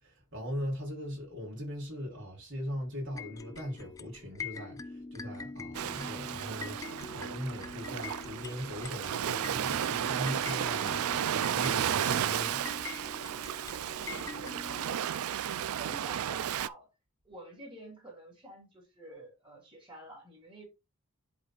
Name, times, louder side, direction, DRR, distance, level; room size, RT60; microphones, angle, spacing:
voice 1, 0.0-12.6, equal, 60° right, 3.7 m, -40 dB
sound 1, 3.1-14.8, left 4 dB, 15° left, 0.3 m, -44 dB
Ocean, 5.7-16.7, right 10 dB, 85° right, 0.4 m, -33 dB
voice 2, 15.5-16.9 17.2-20.7, right 1 dB, 25° right, 3.3 m, -50 dB
11.0 x 4.1 x 2.4 m
head